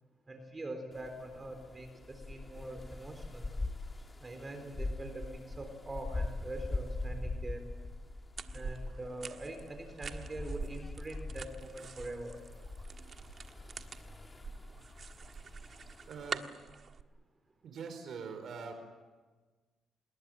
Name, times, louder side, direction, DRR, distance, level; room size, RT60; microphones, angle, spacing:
voice 1, 0.3-3.5 4.2-7.7 8.5-12.4, right 1 dB, 25° right, 6 dB, 4.0 m, -43 dB
sound 1, 0.9-16.3, left 2 dB, 25° left, 2.0 m, -43 dB
sound 2, 8.4-17.0, right 5 dB, 45° right, 1.5 m, -46 dB
voice 2, 16.1-16.4 17.6-18.7, right 5 dB, 65° right, 6 dB, 4.7 m, -43 dB
26.5 x 21.0 x 9.1 m, 1.3 s
cardioid pair, 90°, 0 cm